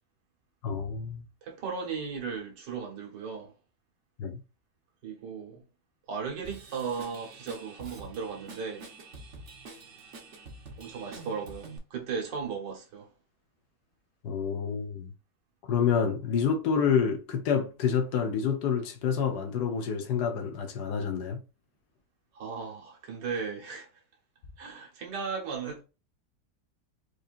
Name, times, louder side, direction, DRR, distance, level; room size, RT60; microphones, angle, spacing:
voice 1, 0.6-1.2 4.2-4.4 14.2-15.1 15.7-21.4, left 7 dB, 70° left, 1.3 m, -28 dB
voice 2, 1.4-3.5 5.0-5.6 6.1-8.9 10.8-13.1 22.3-23.9 24.6-25.8, right 5 dB, 80° right, 1.9 m, -36 dB
Drum kit / Drum, 6.4-11.8, right 3 dB, 50° right, 1.1 m, -47 dB
4.8 x 2.7 x 2.5 m
omnidirectional pair, 1.9 m